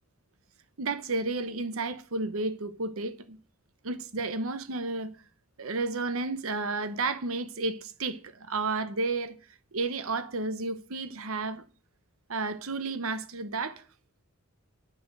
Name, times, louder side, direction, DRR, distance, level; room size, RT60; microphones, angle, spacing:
voice 1, 0.8-3.4 3.8-5.1 5.6-9.4 9.7-11.6 12.3-13.8, right 3 dB, 70° right, 1.0 m, -32 dB
8.9 x 8.0 x 6.6 m
head